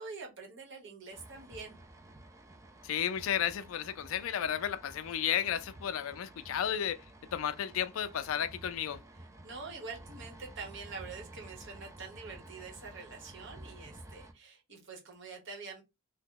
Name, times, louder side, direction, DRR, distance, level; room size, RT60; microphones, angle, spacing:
voice 1, 0.0-1.8 9.1-15.8, right 4 dB, 60° right, 1.1 m, -46 dB
sound 1, 1.1-14.3, right 1 dB, 15° right, 0.4 m, -52 dB
voice 2, 2.8-7.0 7.3-9.0, left 9 dB, 75° left, 0.3 m, -33 dB
2.8 x 2.1 x 3.6 m
head